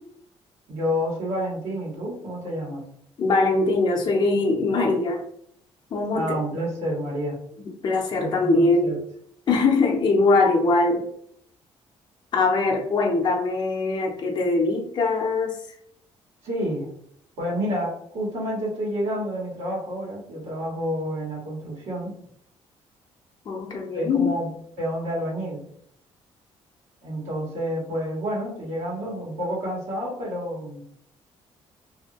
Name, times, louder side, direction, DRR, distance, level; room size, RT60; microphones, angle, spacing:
voice 1, 0.7-2.9 6.1-7.4 8.2-9.0 16.4-16.9 17.4-22.1 23.9-24.5 24.8-25.6 27.0-30.9, equal, 80° right, -5 dB, 1.4 m, -29 dB
voice 2, 3.2-5.2 5.9-6.4 7.8-8.9 9.5-11.0 12.3-15.6 23.5-24.3, left 3 dB, 40° left, 0 dB, 0.6 m, -22 dB
2.7 x 2.7 x 2.8 m, 0.66 s
cardioid pair, 120°, 11 cm